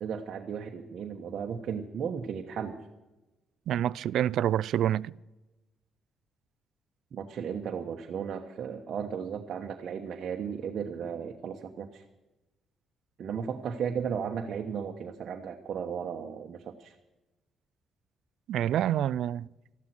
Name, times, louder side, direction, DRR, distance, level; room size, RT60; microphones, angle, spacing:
voice 1, 0.0-2.8 7.1-12.0 13.2-16.9, right 7 dB, 55° right, 1.2 m, -35 dB
voice 2, 3.7-5.1 18.5-19.5, right 11 dB, 70° right, 0.4 m, -27 dB
14.0 x 12.0 x 6.1 m
cardioid pair, 125°, 0 cm